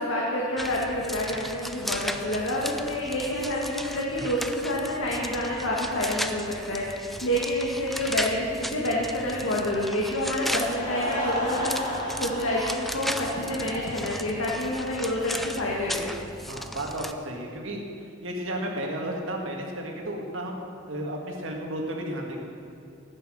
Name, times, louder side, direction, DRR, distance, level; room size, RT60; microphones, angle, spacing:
voice 1, 0.0-16.1, left 1 dB, 90° left, -4 dB, 1.9 m, -28 dB
sound 1, 0.6-17.1, equal, ahead, 0.4 m, -36 dB
Laughter / Crowd, 10.5-14.9, equal, 40° left, 2.7 m, -33 dB
voice 2, 16.5-17.8 18.2-20.5 20.9-22.4, right 1 dB, 70° right, 0 dB, 1.9 m, -33 dB
14.5 x 8.9 x 6.3 m, 2.5 s
head